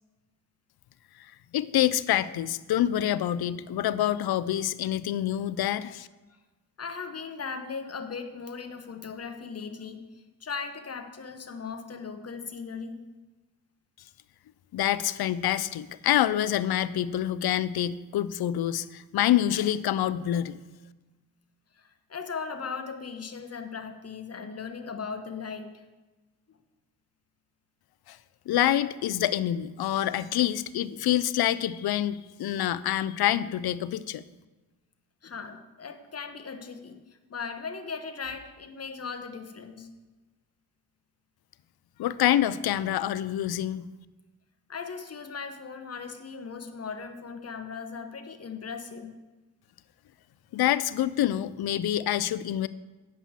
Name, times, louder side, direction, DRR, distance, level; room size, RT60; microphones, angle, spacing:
voice 1, 1.5-6.1 14.7-20.6 28.1-28.2 28.5-34.2 42.0-43.9 50.5-52.7, left 12 dB, 70° left, 17 dB, 0.5 m, -26 dB
voice 2, 6.8-10.0 10.4-13.0 21.7-25.8 26.5-26.6 30.9-31.0 35.2-37.0 37.3-39.9 44.7-49.1, left 5 dB, 40° left, 6 dB, 1.1 m, -38 dB
8.7 x 5.5 x 7.3 m, 1.2 s
cardioid pair, 75°, 40 cm